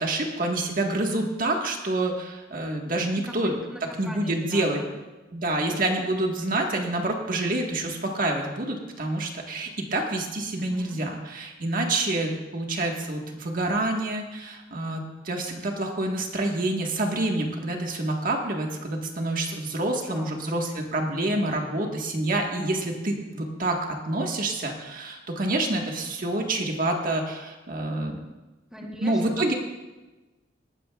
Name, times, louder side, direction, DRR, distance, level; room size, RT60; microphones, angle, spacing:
voice 1, 0.0-3.5 4.0-4.8 5.3-28.2 29.0-29.5, right 2 dB, 50° right, 1 dB, 1.6 m, -27 dB
voice 2, 3.1-4.9 6.0-6.1 10.5-11.0 19.8-20.4 28.7-29.2, equal, 5° right, -1 dB, 1.2 m, -41 dB
19.0 x 12.5 x 2.4 m, 1.1 s
head